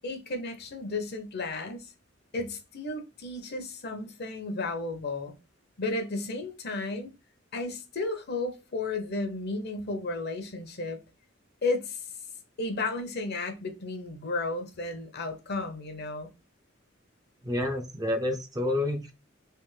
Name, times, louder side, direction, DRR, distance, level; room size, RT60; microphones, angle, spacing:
voice 1, 0.0-1.9 2.3-5.3 5.8-7.1 7.5-11.0 11.6-12.1 12.6-16.3, left 2 dB, 55° left, 0.8 m, -33 dB
voice 2, 17.4-19.1, left 1 dB, 20° right, 0.6 m, -29 dB
3.4 x 3.1 x 3.2 m
head